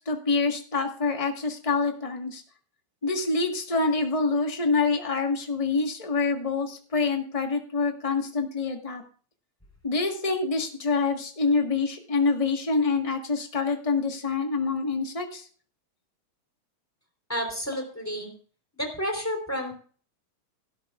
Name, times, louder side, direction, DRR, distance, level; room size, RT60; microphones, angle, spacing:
voice 1, 0.0-2.4 3.0-9.0 9.8-15.5, left 4 dB, 35° left, 3 dB, 0.5 m, -26 dB
voice 2, 17.3-18.3 18.8-19.7, equal, 5° left, 3 dB, 3.4 m, -30 dB
17.5 x 12.5 x 2.4 m, 0.43 s
omnidirectional pair, 3.3 m